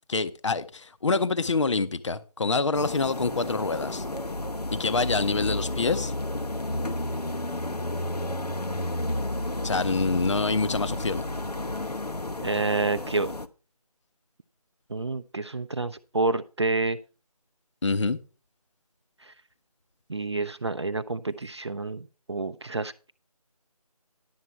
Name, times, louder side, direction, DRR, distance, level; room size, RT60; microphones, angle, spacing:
voice 1, 0.1-4.0 4.7-6.1 9.6-11.2 17.8-18.2, left 3 dB, 50° left, 0.7 m, -26 dB
sound 1, 2.7-13.5, left 1 dB, 85° left, 0.9 m, -32 dB
voice 2, 12.4-13.3 14.9-17.0 20.1-22.9, right 3 dB, 45° right, 0.5 m, -28 dB
11.0 x 7.5 x 4.6 m
figure-of-eight pair, 160°, 20 cm